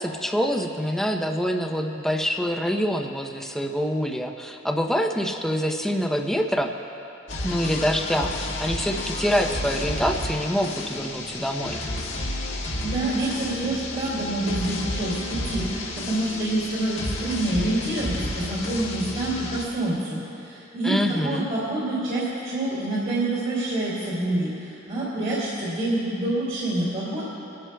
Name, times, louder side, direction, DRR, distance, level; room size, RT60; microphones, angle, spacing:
voice 1, 0.0-6.7 7.4-11.8 20.8-21.5, equal, ahead, 3 dB, 0.7 m, -25 dB
sound 1, 7.3-19.6, left 1 dB, 75° left, 1.6 m, -31 dB
voice 2, 12.4-27.2, right 2 dB, 45° right, -8 dB, 2.5 m, -27 dB
25.0 x 12.0 x 2.3 m, 2.9 s
head